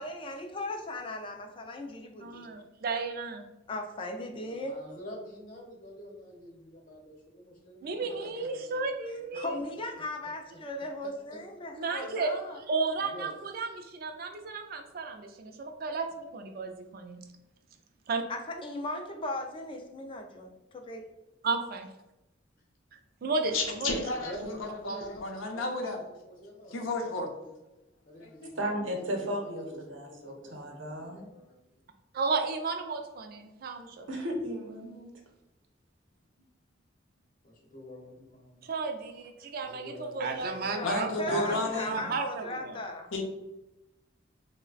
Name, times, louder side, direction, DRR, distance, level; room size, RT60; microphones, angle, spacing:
voice 1, 0.0-2.5 3.7-4.8 9.3-12.6 18.3-21.0 40.7-43.1, left 2 dB, 25° left, 4 dB, 0.3 m, -38 dB
voice 2, 2.2-3.4 7.8-9.6 11.8-12.3 12.7-17.2 18.1-18.2 21.4-21.9 22.9-24.0 24.4-24.5 32.1-34.1 38.6-42.8, right 4 dB, 50° right, 5 dB, 0.4 m, -33 dB
voice 3, 4.3-8.9 10.2-10.3 11.0-11.4 13.0-13.3 13.7-13.8 24.2-26.0 26.2-27.5 28.0-28.6 28.9-31.8 36.4-36.5 37.4-38.7 39.1-39.3 39.6-42.2, equal, 45° left, -1 dB, 0.9 m, -48 dB
voice 4, 23.5-24.5 24.8-26.0 26.7-27.3 28.2-28.5 40.8-41.9 43.1-43.2, left 2 dB, 85° left, 3 dB, 0.6 m, -32 dB
voice 5, 28.6-31.3 34.1-35.1, equal, 75° right, 2 dB, 0.8 m, -35 dB
3.2 x 2.1 x 3.8 m, 0.96 s
head